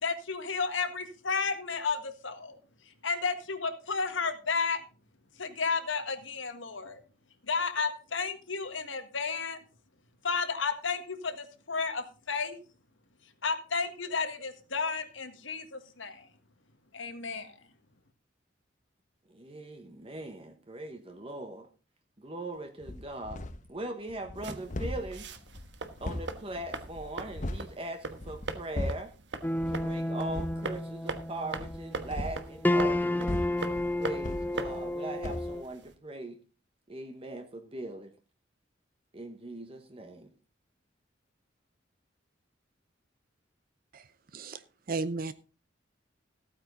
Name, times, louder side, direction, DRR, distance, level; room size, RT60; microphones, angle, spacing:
voice 1, 0.0-2.6 3.0-4.8 5.4-7.0 7.4-9.6 10.2-12.6 13.4-16.3 16.9-17.5, left 5 dB, 80° left, 8 dB, 1.7 m, -32 dB
voice 2, 19.3-21.7 22.2-23.4 23.7-25.3 26.0-29.1 29.7-33.3 34.0-36.4 36.9-38.1 39.1-40.3, right 2 dB, 30° right, 6 dB, 1.0 m, -40 dB
sound 1, 22.8-23.7 24.1-27.7 28.1-29.2 29.6-29.9 30.2-30.6 31.5-35.0 35.2-35.5, left 1 dB, 40° left, 0.9 m, -38 dB
sound 2, 24.4-35.9, right 3 dB, 65° right, 1.3 m, -42 dB
sound 3, 29.4-35.6, left 1 dB, 10° left, 0.6 m, -31 dB
voice 3, 44.9-45.3, right 3 dB, 50° right, 14 dB, 0.6 m, -33 dB
15.0 x 8.8 x 3.9 m, 0.35 s
head